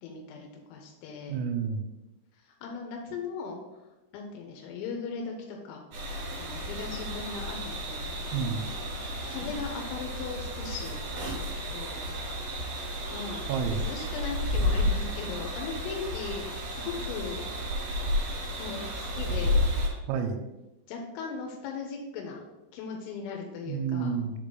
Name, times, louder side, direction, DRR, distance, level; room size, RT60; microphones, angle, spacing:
voice 1, 0.0-1.4 2.4-3.8 4.1-5.8 6.4-8.7 9.3-11.0 11.7-12.2 13.1-13.5 13.8-17.4 18.5-19.6 20.9-22.4 22.7-24.2, left 5 dB, 85° left, 1 dB, 3.4 m, -38 dB
voice 2, 1.3-1.8 8.3-8.7 13.5-13.9 20.1-20.4 23.7-24.3, right 6 dB, 85° right, 5 dB, 3.2 m, -30 dB
sound 1, 5.9-19.9, left 1 dB, 60° right, 2.9 m, -32 dB
7.1 x 3.6 x 3.9 m, 1.0 s
omnidirectional pair, 5.9 m